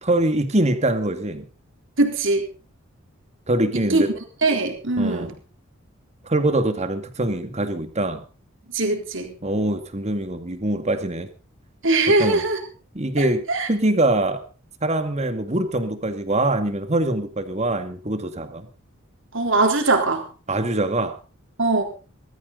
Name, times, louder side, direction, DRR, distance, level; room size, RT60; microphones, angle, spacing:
voice 1, 0.0-1.5 3.5-4.1 5.0-5.3 6.2-8.2 9.4-11.3 12.1-12.4 12.9-14.4 14.8-18.7 20.5-21.2, right 1 dB, 35° right, 8 dB, 2.2 m, -23 dB
voice 2, 2.0-2.5 3.7-4.0 4.4-5.3 8.7-9.3 11.8-12.6 13.2-13.7 19.3-20.3 21.6-21.8, right 2 dB, 65° right, 3 dB, 3.8 m, -21 dB
20.5 x 14.0 x 4.0 m, 0.36 s
head